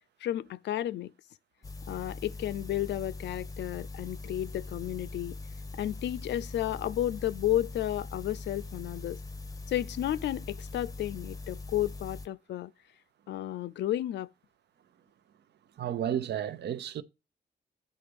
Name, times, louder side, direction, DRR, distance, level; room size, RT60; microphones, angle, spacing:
voice 1, 0.2-1.1 1.9-5.4 5.8-9.2 9.7-12.7 13.3-14.3, left 13 dB, 85° left, 0.4 m, -32 dB
sound 1, 1.6-12.3, left 3 dB, 20° left, 0.6 m, -42 dB
voice 2, 15.8-17.0, right 10 dB, 75° right, 0.6 m, -32 dB
8.4 x 3.8 x 5.1 m
cardioid pair, 115°, 18 cm